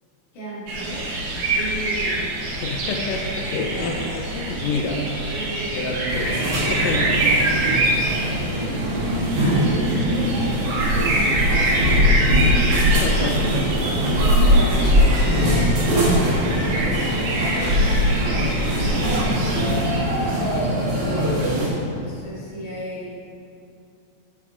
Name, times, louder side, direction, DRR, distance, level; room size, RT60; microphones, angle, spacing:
voice 1, 0.3-1.2 1.5-2.3 3.4-3.9 4.3-4.4 5.2-5.9 7.2-7.4 7.7-8.5 8.7-8.9 9.4-10.9 14.4-15.3 16.0-19.2 19.4-20.8 21.9-23.2, right 1 dB, 90° left, -8 dB, 3.8 m, -36 dB
sound 1, 0.7-20.0, right 2 dB, 65° right, 2.4 m, -26 dB
voice 2, 2.5-5.0 5.7-7.1 12.8-13.7, left 3 dB, 70° left, 2 dB, 1.7 m, -28 dB
sound 2, 6.1-21.7, equal, 50° right, 2.6 m, -21 dB
10.0 x 8.6 x 2.6 m, 2.5 s
omnidirectional pair, 3.5 m